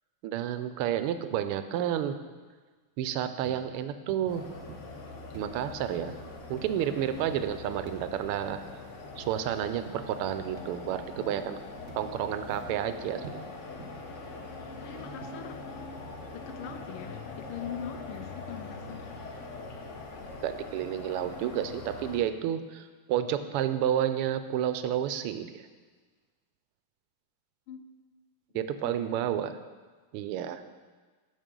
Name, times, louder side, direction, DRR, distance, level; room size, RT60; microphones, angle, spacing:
voice 1, 0.2-2.2 3.0-4.4 5.3-6.2 6.5-8.6 9.2-11.6 11.9-13.2 20.4-25.6 28.5-29.5 30.1-30.6, right 10 dB, 90° right, 10 dB, 1.5 m, -30 dB
sound 1, 3.4-3.7 4.1-4.4 4.7-5.1 5.3-5.5 5.9-6.2 6.6-6.8 7.2-7.4 7.9-8.1 8.5-8.8 9.2-9.4 9.9-10.1 10.6-10.8 11.2-11.4 11.9-12.2 12.5-12.8 13.2-13.4 13.8-14.1 14.5-14.8 15.2-15.4 16.0-16.2 16.7-16.8, right 4 dB, 60° right, 0.7 m, -48 dB
sound 2, 4.3-22.2, left 3 dB, 55° left, 0.8 m, -43 dB
voice 2, 14.8-15.7 16.3-19.1 27.7-27.8 28.5-29.2, left 9 dB, 90° left, 8 dB, 1.5 m, -42 dB
10.5 x 6.8 x 3.7 m, 1.4 s
omnidirectional pair, 2.4 m